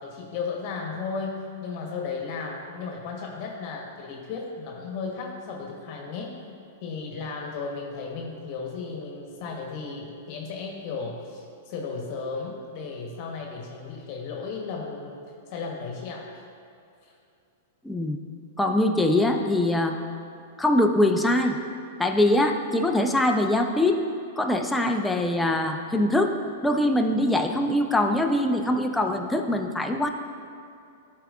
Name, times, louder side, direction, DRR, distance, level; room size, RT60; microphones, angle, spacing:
voice 1, 0.0-6.3 6.8-15.2 15.5-16.3 17.0-17.1, left 4 dB, 50° left, 0 dB, 1.2 m, -35 dB
voice 2, 17.8-18.2 18.6-20.0 20.6-21.6 22.0-24.0 24.4-26.4 26.6-30.1, left 1 dB, 5° left, 3 dB, 0.6 m, -23 dB
12.5 x 4.7 x 2.5 m, 2.5 s
hypercardioid pair, 115°, 0 cm